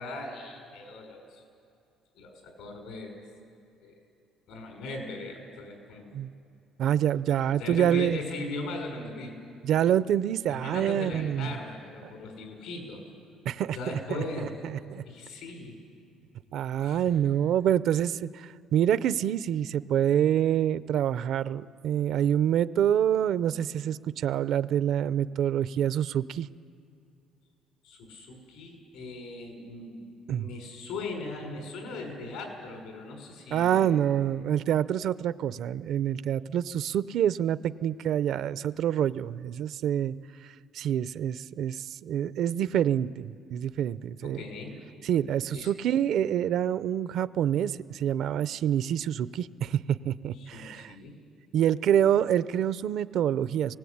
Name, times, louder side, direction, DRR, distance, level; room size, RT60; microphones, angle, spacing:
voice 1, 0.0-1.4 2.2-3.2 3.8-3.9 4.5-6.1 7.4-9.4 10.5-13.0 13.7-14.5 14.8-15.8 16.8-17.2 27.8-30.0 30.3-34.1 44.2-44.8 45.5-45.7 50.4-51.2, left 2 dB, 80° left, 2 dB, 6.1 m, -39 dB
voice 2, 6.8-8.2 9.6-11.5 13.4-15.0 16.5-26.5 30.3-30.5 33.5-40.1 40.7-44.4 45.0-50.9 51.5-53.8, right 10 dB, 60° right, 16 dB, 0.5 m, -27 dB
21.0 x 18.5 x 8.7 m, 2.5 s
cardioid pair, 125°, 0 cm